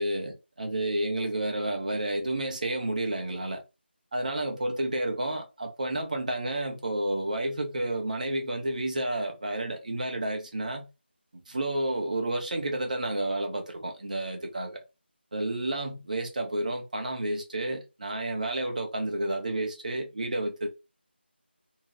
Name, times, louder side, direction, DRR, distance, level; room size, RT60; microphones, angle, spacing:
voice 1, 0.0-3.6 4.1-10.9 11.3-14.8 15.3-20.7, right 1 dB, 40° right, 0.8 m, -30 dB
2.7 x 2.1 x 3.1 m
figure-of-eight pair, 165°, 6 cm